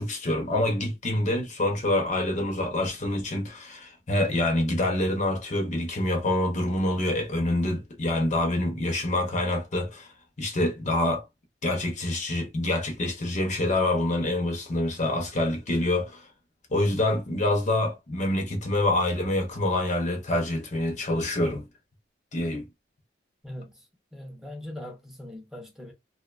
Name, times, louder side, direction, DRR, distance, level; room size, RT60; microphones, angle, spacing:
voice 1, 0.0-10.1 10.4-11.2 11.6-16.2 16.7-21.7 22.3-22.6, left 1 dB, 40° left, 0.6 m, -26 dB
voice 2, 23.4-23.8 24.1-25.9, left 1 dB, ahead, 0.6 m, -40 dB
2.5 x 2.1 x 2.4 m
head